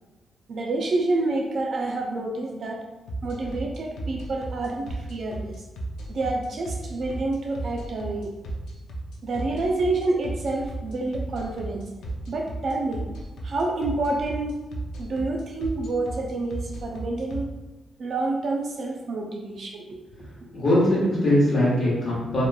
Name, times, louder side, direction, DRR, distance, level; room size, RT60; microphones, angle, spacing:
voice 1, 0.5-2.8 3.2-5.5 6.1-8.3 9.2-11.9 12.3-13.0 13.4-14.7 15.0-17.5 18.0-20.3, right 2 dB, 45° right, 1 dB, 0.3 m, -28 dB
sound 1, 3.1-17.4, right 2 dB, 80° left, 0.4 m, -33 dB
voice 2, 20.5-22.4, left 1 dB, 35° left, -7 dB, 1.1 m, -21 dB
2.9 x 2.2 x 2.2 m, 1.2 s
wide cardioid pair, 165°, 0 cm